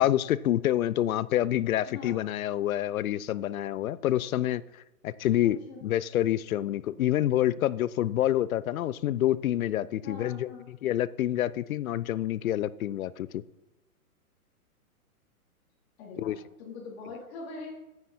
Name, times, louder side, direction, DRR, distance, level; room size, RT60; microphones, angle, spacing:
voice 1, 0.0-4.6 5.0-13.4 16.2-16.4, left 12 dB, 65° left, 19 dB, 0.6 m, -27 dB
voice 2, 1.9-2.2 5.4-5.8 10.0-10.7 16.0-17.7, left 4 dB, 45° left, -1 dB, 3.6 m, -43 dB
9.5 x 8.9 x 4.3 m, 0.96 s
hypercardioid pair, 135°, 45 cm